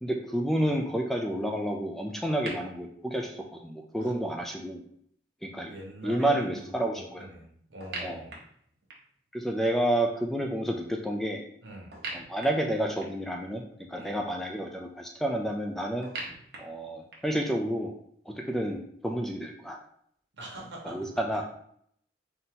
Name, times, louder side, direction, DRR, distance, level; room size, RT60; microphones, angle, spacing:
voice 1, 0.0-4.8 5.4-5.7 6.0-7.3 8.0-8.2 9.3-11.4 12.1-13.6 13.9-16.1 16.6-17.9 18.3-19.8 20.8-21.4, right 1 dB, ahead, 1 dB, 0.3 m, -30 dB
sound 1, 2.5-2.6 7.8-9.2 11.9-13.3 16.0-17.4, right 3 dB, 60° right, 1.0 m, -41 dB
voice 2, 5.7-8.3 11.6-11.9 13.9-14.2 20.3-21.1, right 1 dB, 75° right, -1 dB, 1.2 m, -43 dB
4.0 x 2.7 x 3.8 m, 0.67 s
head